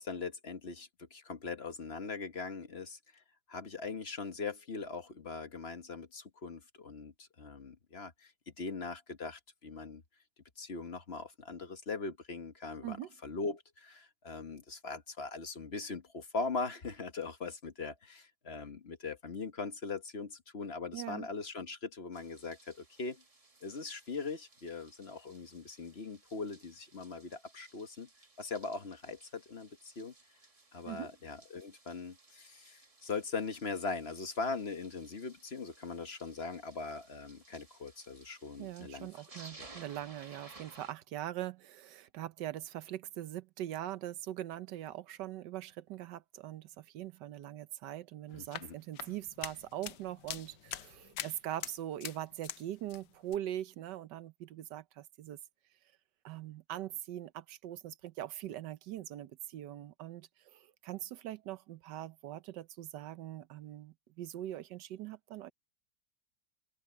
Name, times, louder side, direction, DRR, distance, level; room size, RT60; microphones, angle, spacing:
voice 1, 0.0-3.2 3.5-10.0 10.6-13.0 13.2-23.2 23.6-28.1 28.4-30.1 30.7-39.7 48.3-48.7, left 4 dB, 40° left, 1.3 m, -41 dB
voice 2, 20.9-21.3 30.9-31.1 38.6-55.4 56.2-65.5, right 13 dB, 85° right, 1.4 m, -42 dB
sound 1, 22.1-40.9, right 3 dB, 20° right, 1.4 m, -59 dB
sound 2, 48.3-52.6 52.9-53.4, left 11 dB, 90° left, 1.5 m, -44 dB
omnidirectional pair, 1.8 m